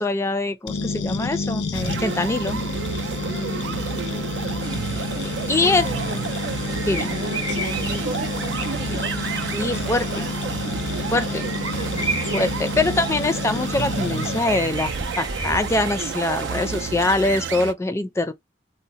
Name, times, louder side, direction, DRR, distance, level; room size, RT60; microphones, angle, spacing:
voice 1, 0.0-2.6 5.5-5.8 6.9-7.1 9.5-10.3 11.1-11.4 12.3-18.3, left 2 dB, 15° left, 0.4 m, -23 dB
sound 1, 0.7-14.4, left 4 dB, 80° left, 0.5 m, -30 dB
sound 2, 1.7-17.7, right 6 dB, 85° right, 0.4 m, -31 dB
voice 2, 3.0-5.2 5.6-6.4 6.8-12.5, right 2 dB, 60° right, 0.7 m, -37 dB
sound 3, 4.6-16.8, right 2 dB, 20° right, 0.6 m, -34 dB
2.8 x 2.0 x 4.0 m
head